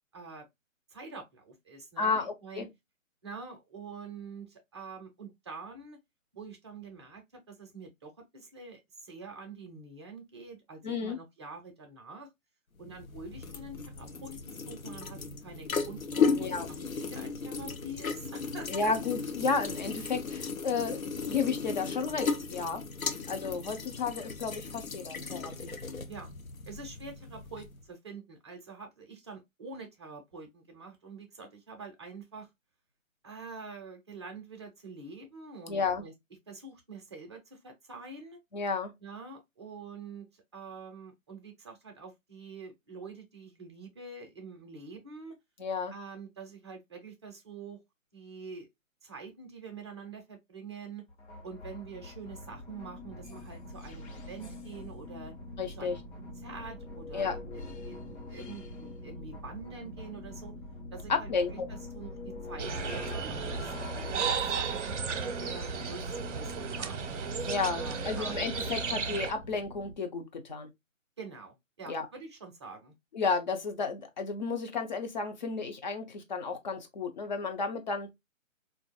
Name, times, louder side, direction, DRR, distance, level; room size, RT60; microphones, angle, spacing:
voice 1, 0.1-0.5 0.9-2.7 3.2-6.0 6.3-12.3 12.8-18.9 23.7-23.9 26.1-26.3 26.6-32.5 33.2-36.1 36.5-38.4 39.0-45.4 45.9-47.8 48.1-48.7 49.0-51.0 51.4-55.3 55.8-60.5 60.9-67.3 67.8-68.8 71.2-72.9, right 4 dB, 20° right, 0.5 m, -46 dB
voice 2, 2.0-2.6 10.8-11.2 16.4-16.7 18.7-21.0 21.3-22.8 23.3-25.7 35.7-36.0 38.5-38.9 45.6-45.9 55.6-56.0 57.1-57.4 61.1-61.5 67.4-70.7 71.9-72.1 73.1-78.1, left 4 dB, 35° left, 0.7 m, -32 dB
sound 1, 12.8-27.8, left 5 dB, 90° left, 0.7 m, -35 dB
sound 2, 51.1-69.9, left 1 dB, 55° left, 1.2 m, -43 dB
sound 3, 62.6-69.3, right 6 dB, 60° right, 0.6 m, -34 dB
3.9 x 2.6 x 2.2 m
figure-of-eight pair, 140°, 40 cm